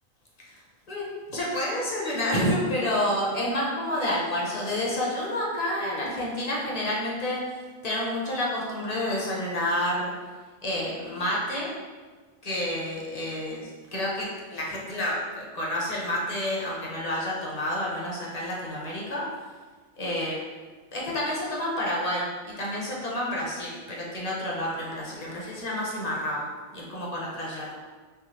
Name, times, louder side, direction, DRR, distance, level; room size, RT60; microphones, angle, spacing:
voice 1, 0.9-7.6 7.8-10.1 10.6-11.7 12.4-13.6 13.9-19.2 20.0-20.4 20.9-26.5 26.7-27.8, left 1 dB, 40° left, -4 dB, 0.7 m, -29 dB
3.6 x 2.7 x 2.9 m, 1.4 s
omnidirectional pair, 1.3 m